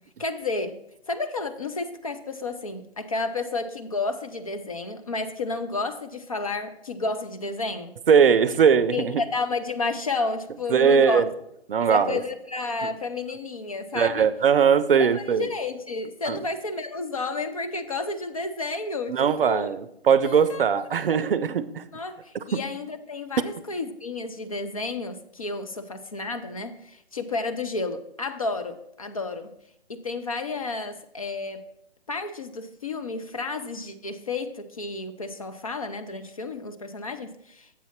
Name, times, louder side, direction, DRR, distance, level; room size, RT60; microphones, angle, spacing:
voice 1, 0.2-0.8 1.1-7.9 8.9-11.2 11.8-14.3 14.9-19.7 20.2-20.6 21.1-21.3 21.9-29.5 29.9-31.6 32.1-37.9, left 3 dB, 35° left, 0.4 m, -31 dB
voice 2, 8.1-9.2 10.7-11.3 11.7-12.2 13.9-15.5 16.3-16.4 19.1-21.8, right 7 dB, 60° right, 0.5 m, -20 dB
7.3 x 4.0 x 5.7 m
figure-of-eight pair, 135°, 32 cm